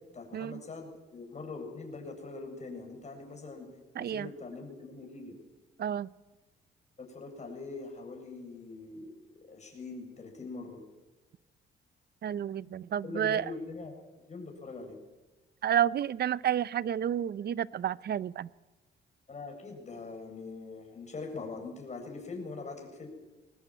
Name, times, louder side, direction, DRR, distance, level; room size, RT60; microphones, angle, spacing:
voice 1, 0.1-3.7 4.0-5.3 7.0-10.8 13.0-13.9 14.3-15.0 19.3-23.1, left 3 dB, 35° left, 1 dB, 7.7 m, -42 dB
voice 2, 3.9-4.3 5.8-6.1 12.2-13.5 15.6-18.5, right 10 dB, 55° right, 19 dB, 0.7 m, -30 dB
22.0 x 19.5 x 9.0 m, 1.1 s
cardioid pair, 90°, 20 cm